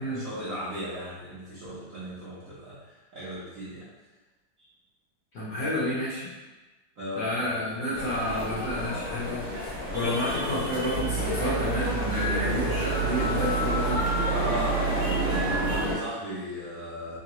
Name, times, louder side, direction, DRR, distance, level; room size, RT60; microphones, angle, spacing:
voice 1, 0.0-3.9 7.0-8.1 14.2-17.2, equal, 55° right, -10 dB, 1.0 m, -36 dB
voice 2, 5.3-6.3 7.2-14.1, left 1 dB, 55° left, -9 dB, 1.1 m, -30 dB
sound 1, 7.9-16.0, left 1 dB, 35° right, 1.1 m, -30 dB
sound 2, 10.9-15.9, right 11 dB, 90° left, 1.6 m, -31 dB
3.9 x 2.2 x 2.8 m, 1.2 s
omnidirectional pair, 2.1 m